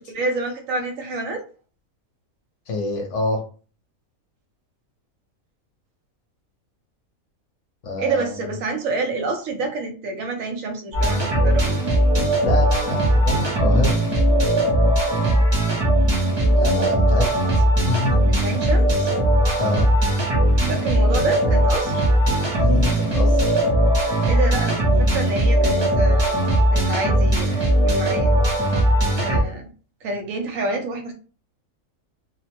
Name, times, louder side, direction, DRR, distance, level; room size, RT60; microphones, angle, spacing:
voice 1, 0.1-1.4 8.0-11.7 18.2-19.1 20.7-22.0 24.2-24.8 25.1-26.3 26.7-28.3 29.2-29.7 30.0-31.1, right 2 dB, 75° right, 4 dB, 1.0 m, -27 dB
voice 2, 2.7-3.4 7.8-8.4 12.4-14.0 16.6-17.2 17.6-18.2 19.5-19.9 22.6-23.6, left 2 dB, 65° left, 2 dB, 1.0 m, -26 dB
sound 1, 10.9-29.4, right 1 dB, 30° right, 0.5 m, -19 dB
2.8 x 2.0 x 2.9 m, 0.38 s
omnidirectional pair, 1.5 m